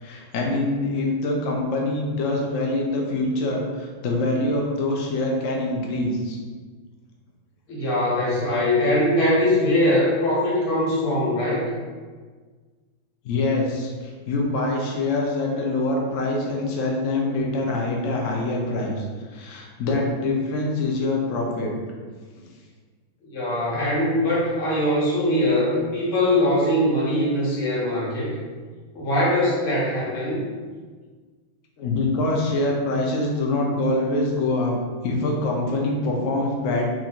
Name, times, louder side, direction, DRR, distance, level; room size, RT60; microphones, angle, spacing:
voice 1, 0.0-6.4 13.2-19.0 19.3-21.7 31.8-34.8 35.0-36.9, left 2 dB, 65° left, -1 dB, 0.8 m, -24 dB
voice 2, 7.7-11.7 23.2-28.3 29.0-30.4, left 1 dB, 90° left, -6 dB, 2.2 m, -22 dB
4.0 x 2.6 x 4.5 m, 1.5 s
omnidirectional pair, 2.3 m